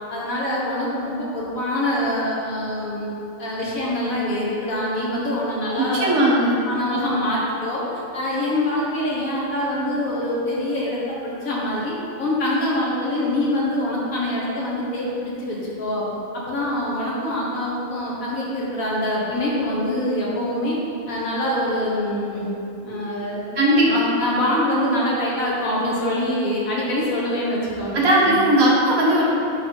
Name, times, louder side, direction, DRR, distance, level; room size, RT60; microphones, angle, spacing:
voice 1, 0.1-3.1 3.4-6.1 6.7-7.8 8.1-16.1 16.3-20.8 21.1-22.5 22.8-23.4 23.8-27.9 28.2-28.4, left 1 dB, 70° left, -5 dB, 1.8 m, -24 dB
voice 2, 5.9-6.6 23.6-24.1 27.9-29.2, right 1 dB, 70° right, -5 dB, 1.8 m, -17 dB
8.4 x 3.5 x 5.3 m, 2.8 s
omnidirectional pair, 1.5 m